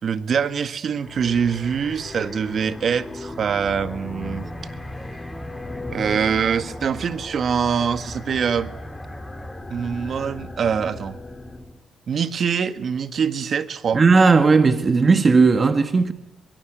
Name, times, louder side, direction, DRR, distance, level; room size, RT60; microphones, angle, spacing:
voice 1, 0.0-4.5 5.9-8.7 9.7-11.2 12.1-14.0, right 7 dB, 55° right, 1.8 m, -24 dB
sound 1, 1.0-11.8, left 2 dB, 20° left, 2.9 m, -37 dB
sound 2, 3.5-9.6, equal, ahead, 4.7 m, -40 dB
voice 2, 13.9-16.1, right 4 dB, 35° right, 1.9 m, -16 dB
24.0 x 21.5 x 9.3 m
cardioid pair, 75°, 0 cm